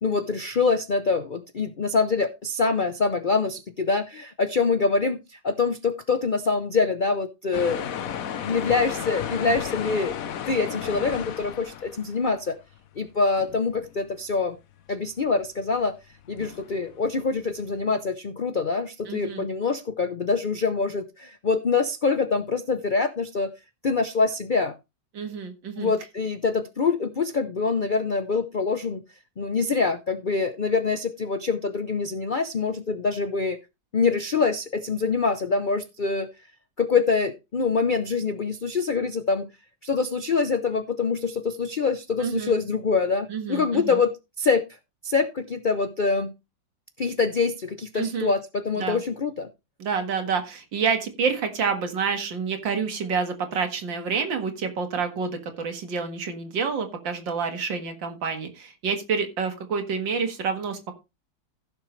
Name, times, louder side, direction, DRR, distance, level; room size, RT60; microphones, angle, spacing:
voice 1, 0.0-7.9 8.4-10.2 10.5-12.6 13.0-14.6 14.9-15.9 16.3-23.5 23.8-24.7 25.8-29.0 29.4-33.6 33.9-36.3 36.8-39.5 39.8-44.6 45.0-46.3 47.0-49.5, left 4 dB, 75° left, 10 dB, 0.4 m, -25 dB
sound 1, 7.5-12.3 12.7-13.1 13.4-14.1 15.7-15.8 16.3-17.2, left 9 dB, 60° left, 1.1 m, -34 dB
voice 2, 19.1-19.4 25.1-25.9 42.2-42.6 43.3-44.0 47.9-48.3 48.8-49.0 49.8-60.9, right 5 dB, 80° right, 6 dB, 2.4 m, -28 dB
15.5 x 6.7 x 3.2 m, 0.25 s
omnidirectional pair, 2.0 m